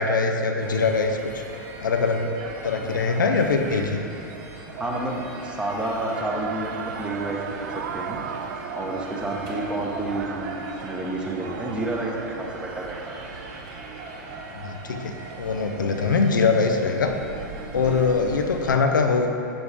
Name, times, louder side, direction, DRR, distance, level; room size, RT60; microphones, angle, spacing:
voice 1, 0.0-1.4 1.8-4.0 14.5-17.2 17.7-19.3, left 4 dB, 80° left, 4 dB, 0.6 m, -23 dB
sound 1, 0.6-18.7, right 3 dB, 45° right, 1.0 m, -39 dB
voice 2, 4.7-8.2 8.7-13.2 15.8-16.0 17.7-18.0, right 1 dB, 10° right, -1 dB, 1.0 m, -30 dB
sound 2, 6.1-13.8, right 7 dB, 65° right, 0.4 m, -37 dB
7.0 x 6.7 x 3.5 m, 2.7 s
figure-of-eight pair, 100°, 10 cm